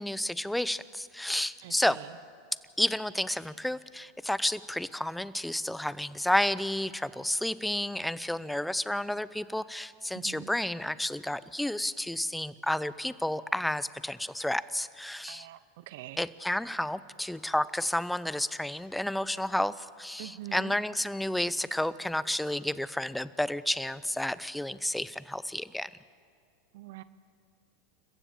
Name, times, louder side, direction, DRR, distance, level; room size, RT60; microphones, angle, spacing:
voice 1, 0.0-2.0 2.8-15.5 16.2-25.9, left 1 dB, 5° left, 18 dB, 0.7 m, -31 dB
voice 2, 1.6-2.2 10.1-10.5 15.3-16.3 20.2-20.7 26.7-27.0, right 15 dB, 65° right, 15 dB, 0.7 m, -44 dB
29.0 x 15.0 x 7.3 m, 2.3 s
hypercardioid pair, 90°, 0 cm